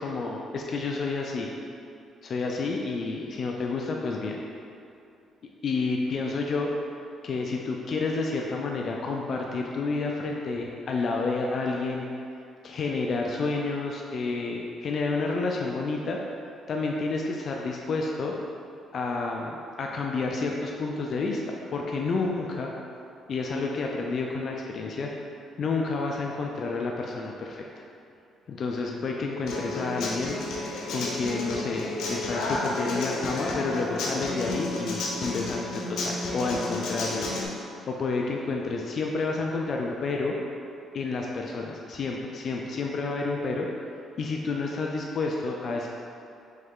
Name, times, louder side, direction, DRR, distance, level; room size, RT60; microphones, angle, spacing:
voice 1, 0.0-1.5 2.2-4.4 5.6-6.7 7.2-12.1 12.6-16.2 16.7-18.3 18.9-22.7 23.3-25.1 25.6-27.6 28.5-30.4 30.9-37.3 37.9-40.3 40.9-43.7 44.2-45.9, left 3 dB, 55° left, 0 dB, 0.4 m, -30 dB
Human voice / Acoustic guitar, 29.5-37.5, left 2 dB, 75° left, 0.7 m, -32 dB
3.9 x 3.2 x 3.6 m, 2.6 s
cardioid pair, 85°, 0 cm